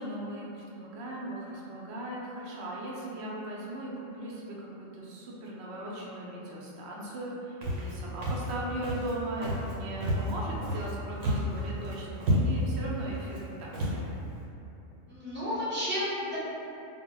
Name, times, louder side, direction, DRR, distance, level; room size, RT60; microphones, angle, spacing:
voice 1, 0.0-14.1, right 1 dB, 65° right, -4 dB, 0.7 m, -38 dB
Walk footsteps, 7.6-7.9 8.2-8.5 8.8-9.1 9.4-9.7 10.0-10.9 11.2-11.6 11.8-11.9 12.2-12.7 13.3-13.4 13.7-14.0, equal, 80° right, 1.0 m, -29 dB
voice 2, 15.1-16.4, equal, 15° right, -12 dB, 0.5 m, -32 dB
2.1 x 2.1 x 3.7 m, 2.9 s
omnidirectional pair, 1.4 m